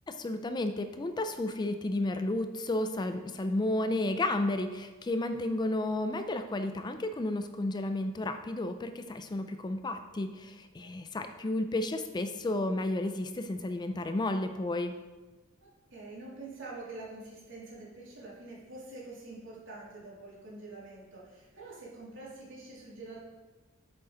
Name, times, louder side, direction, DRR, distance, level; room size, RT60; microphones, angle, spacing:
voice 1, 0.1-14.9, left 2 dB, 20° left, 8 dB, 0.4 m, -32 dB
voice 2, 15.6-23.2, right 2 dB, 65° right, -6 dB, 2.8 m, -46 dB
8.4 x 6.6 x 3.8 m, 1.2 s
head